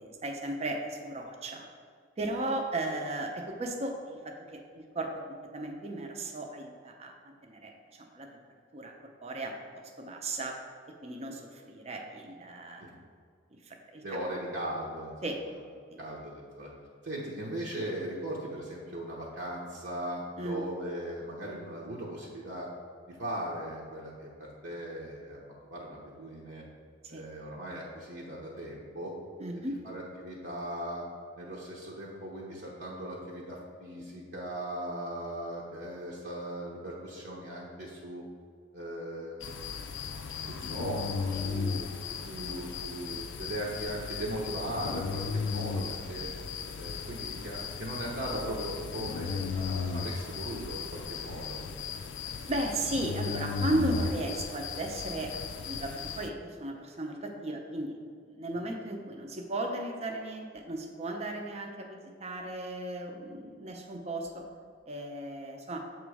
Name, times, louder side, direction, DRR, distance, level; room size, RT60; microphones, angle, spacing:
voice 1, 0.0-1.7 2.2-5.2 5.5-8.3 8.7-8.9 9.2-9.5 10.0-10.6 11.0-12.9 13.7-14.0 15.2-15.4 15.9-16.0 20.4-20.6 27.0-27.2 29.4-29.8 42.2-42.5 52.5-58.0 58.2-64.4 64.9-65.8, right 1 dB, 35° right, 2 dB, 0.6 m, -35 dB
voice 2, 14.0-15.1 16.0-16.7 17.0-22.7 23.1-25.4 25.7-26.6 27.1-29.1 29.5-31.0 31.4-38.2 38.7-39.4 40.5-41.9 42.4-46.3 46.8-51.7, right 1 dB, 60° right, -5 dB, 0.8 m, -38 dB
sound 1, 39.4-56.3, left 5 dB, 75° left, 0.4 m, -36 dB
7.2 x 3.1 x 4.8 m, 2.1 s
head